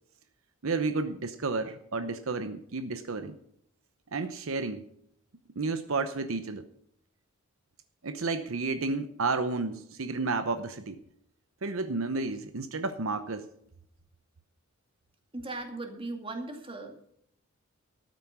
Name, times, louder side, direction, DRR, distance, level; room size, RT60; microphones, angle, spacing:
voice 1, 0.6-3.4 4.1-4.9 5.6-6.6 8.0-11.0 11.6-13.5, right 3 dB, 70° right, 10 dB, 0.8 m, -31 dB
voice 2, 15.3-17.1, right 2 dB, 25° right, 4 dB, 2.2 m, -38 dB
13.0 x 9.1 x 5.9 m, 0.69 s
head